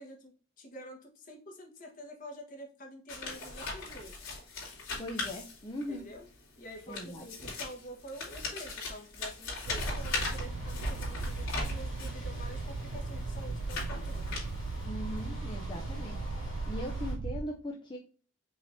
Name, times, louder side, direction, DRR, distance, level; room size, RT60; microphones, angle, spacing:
voice 1, 0.0-4.3 5.9-6.3 6.6-14.4, equal, 40° left, 1 dB, 1.3 m, -47 dB
sound 1, 3.1-6.0 6.7-12.2 12.9-14.8, left 3 dB, 85° left, 2.5 m, -39 dB
voice 2, 5.0-6.1 6.9-7.2 14.8-16.2 16.7-18.0, left 1 dB, 25° left, 0 dB, 0.6 m, -40 dB
sound 2, 9.7-17.4, right 3 dB, 60° right, 0.4 m, -37 dB
sound 3, 9.8-17.2, equal, 70° left, 2.3 m, -49 dB
5.5 x 3.4 x 2.7 m, 0.40 s
head